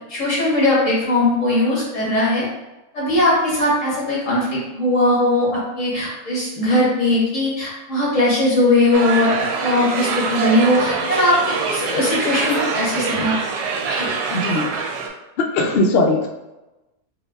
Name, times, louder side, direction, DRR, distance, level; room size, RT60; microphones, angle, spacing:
voice 1, 0.1-2.5 2.9-13.4 13.9-14.1, left 1 dB, 55° left, -7 dB, 1.8 m, -19 dB
sound 1, 8.9-15.1, right 4 dB, 85° right, 1.1 m, -24 dB
voice 2, 14.3-14.7 15.4-16.3, left 2 dB, 80° left, 1 dB, 0.5 m, -19 dB
4.8 x 2.2 x 2.3 m, 1.0 s
omnidirectional pair, 1.6 m